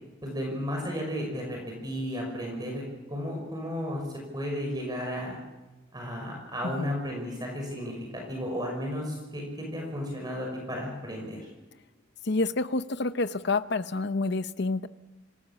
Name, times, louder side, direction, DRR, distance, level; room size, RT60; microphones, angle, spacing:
voice 1, 0.2-2.8 3.1-4.0 4.3-5.4 5.9-11.5, equal, 20° right, 0 dB, 5.7 m, -33 dB
voice 2, 12.2-14.9, left 3 dB, 55° left, 13 dB, 0.8 m, -28 dB
26.0 x 18.5 x 7.4 m, 1.1 s
head